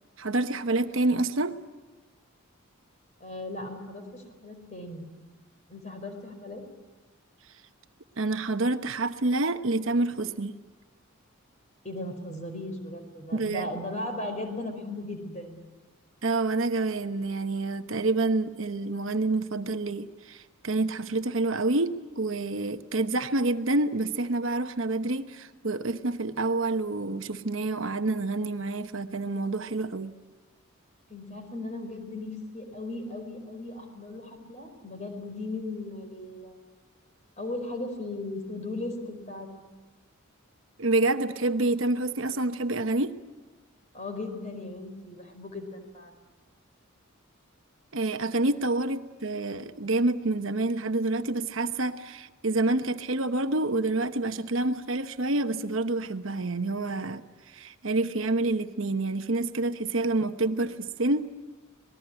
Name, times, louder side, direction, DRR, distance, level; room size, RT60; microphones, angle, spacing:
voice 1, 0.2-1.5 8.2-10.5 13.3-13.7 16.2-30.1 40.8-43.1 47.9-57.2 57.5-61.3, right 2 dB, 65° right, 9 dB, 1.1 m, -28 dB
voice 2, 3.2-5.1 5.7-6.6 11.8-15.7 31.1-36.6 37.4-39.5 43.9-46.3, left 2 dB, 35° left, 6 dB, 4.7 m, -37 dB
26.5 x 19.5 x 9.9 m, 1.2 s
head